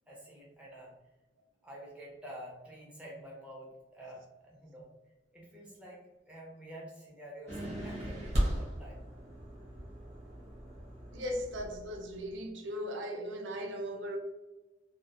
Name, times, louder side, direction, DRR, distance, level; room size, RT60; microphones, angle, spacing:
voice 1, 0.1-0.9 1.6-4.9 5.3-9.0, equal, 5° right, 0.4 m, -49 dB
sound 1, 7.5-12.3, equal, 35° right, 0.8 m, -37 dB
voice 2, 11.1-14.2, equal, 70° right, 0.4 m, -38 dB
2.3 x 2.1 x 2.7 m
head